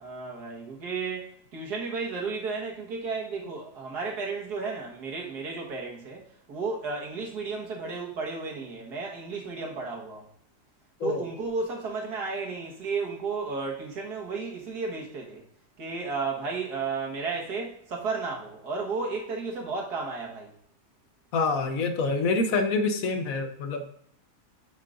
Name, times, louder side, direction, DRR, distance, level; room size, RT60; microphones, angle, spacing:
voice 1, 0.0-10.3 11.0-15.4 15.8-20.5, right 4 dB, 80° right, 2.0 m, -33 dB
voice 2, 21.3-23.9, left 3 dB, 65° left, 1.1 m, -26 dB
9.7 x 5.6 x 2.5 m
omnidirectional pair, 1.7 m